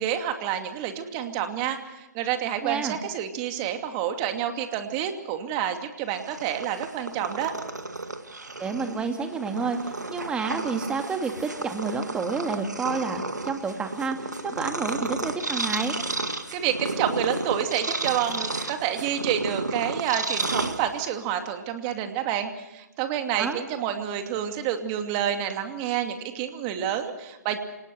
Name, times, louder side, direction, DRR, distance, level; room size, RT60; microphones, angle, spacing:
voice 1, 0.0-7.6 16.5-27.6, right 10 dB, 30° right, 6 dB, 2.5 m, -29 dB
voice 2, 2.6-3.0 8.6-16.0 23.4-23.6, right 4 dB, 10° right, 6 dB, 2.2 m, -29 dB
Purr, 6.1-21.3, right 2 dB, 90° right, 2.1 m, -32 dB
28.0 x 19.0 x 6.6 m, 0.96 s
figure-of-eight pair, 130°, 9 cm